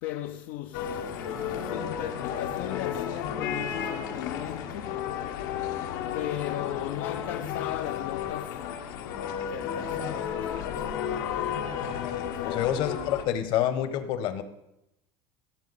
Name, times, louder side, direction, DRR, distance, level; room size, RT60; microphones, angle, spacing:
voice 1, 0.0-5.0 6.1-8.7 9.5-11.0 12.2-12.7, left 13 dB, 75° left, 0.5 m, -37 dB
sound 1, 0.7-13.2, left 8 dB, 90° left, 1.3 m, -33 dB
voice 2, 12.4-14.4, left 11 dB, 55° left, 1.0 m, -27 dB
16.5 x 7.4 x 4.1 m
cardioid pair, 155°, 10 cm